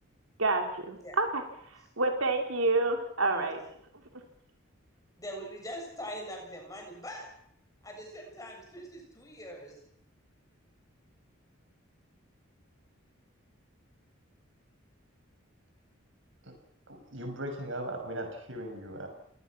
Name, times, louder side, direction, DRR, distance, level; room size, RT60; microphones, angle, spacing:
voice 1, 0.4-1.4 2.0-3.6, right 3 dB, 85° right, 4 dB, 3.3 m, -28 dB
voice 2, 3.3-3.7 5.2-7.3 7.8-9.8, equal, 15° left, 1 dB, 7.1 m, -42 dB
voice 3, 16.9-19.1, right 1 dB, 70° right, 4 dB, 6.3 m, -38 dB
29.5 x 19.0 x 6.0 m, 0.69 s
head